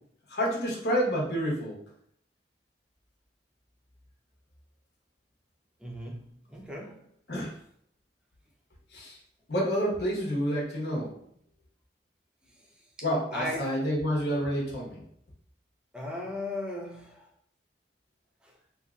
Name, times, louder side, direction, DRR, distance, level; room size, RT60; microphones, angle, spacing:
voice 1, 0.3-1.8 7.3-7.6 8.9-9.2 9.5-11.2 13.0-15.0, equal, 65° left, -4 dB, 1.1 m, -29 dB
voice 2, 5.8-7.0 12.4-12.7 13.3-13.6 15.9-17.3 18.4-18.6, left 1 dB, 5° right, -1 dB, 0.5 m, -37 dB
3.7 x 2.7 x 2.3 m, 0.69 s
head